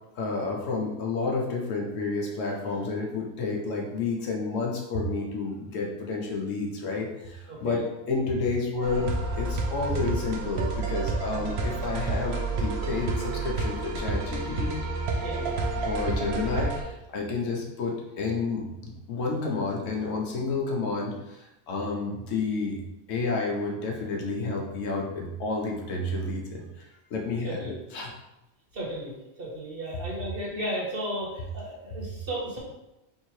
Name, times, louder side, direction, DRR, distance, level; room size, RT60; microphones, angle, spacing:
voice 1, 0.2-7.8 8.1-14.7 15.8-22.8 23.1-26.9 27.1-28.1, left 3 dB, 90° left, -1 dB, 1.1 m, -30 dB
voice 2, 7.5-7.8 12.2-12.4 15.2-15.7 27.4-27.8 28.7-29.1 29.4-32.6, right 1 dB, 50° right, -4 dB, 1.4 m, -34 dB
sound 1, 8.8-16.8, right 3 dB, 65° right, 0.9 m, -30 dB
3.5 x 2.8 x 4.5 m, 0.94 s
omnidirectional pair, 1.3 m